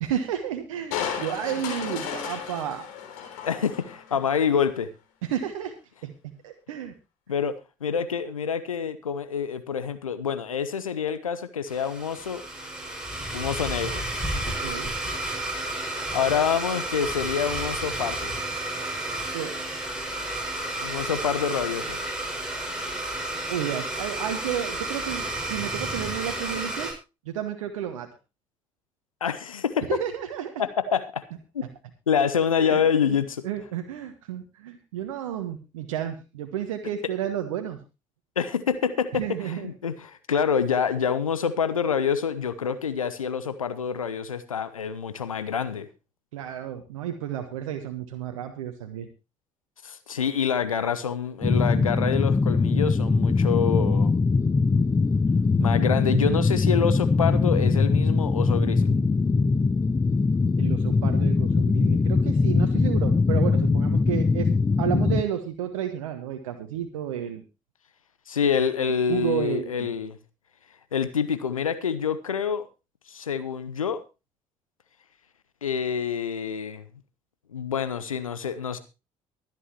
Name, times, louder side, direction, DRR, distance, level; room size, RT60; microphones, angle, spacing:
voice 1, 0.0-2.9 5.2-5.7 6.0-6.1 6.4-6.9 14.4-14.9 19.3-19.6 22.4-22.8 23.5-26.9 27.2-28.1 29.9-30.5 32.6-32.8 33.1-37.8 39.1-39.7 46.3-49.1 60.6-67.4 69.1-69.9, right 10 dB, 75° right, 6 dB, 1.3 m, -31 dB
Crushing, 0.9-4.3 4.7-4.8, left 8 dB, 65° left, 3.7 m, -34 dB
voice 2, 3.4-4.9 7.3-7.5 7.8-12.4 13.3-14.1 16.1-18.3 20.8-22.0 29.2-29.9 30.6-31.0 31.5-31.7 32.1-33.4 38.4-45.9 49.8-54.1 55.6-58.9 68.3-70.2 70.9-72.7 73.1-74.0 75.6-76.8 77.5-78.8, left 7 dB, 85° left, 13 dB, 1.0 m, -27 dB
Domestic sounds home sounds, 11.7-26.9, right 1 dB, 5° right, 5.9 m, -31 dB
sound 1, 51.4-65.2, left 4 dB, 20° left, 0.7 m, -22 dB
23.5 x 8.3 x 3.0 m, 0.29 s
figure-of-eight pair, 45°, 17 cm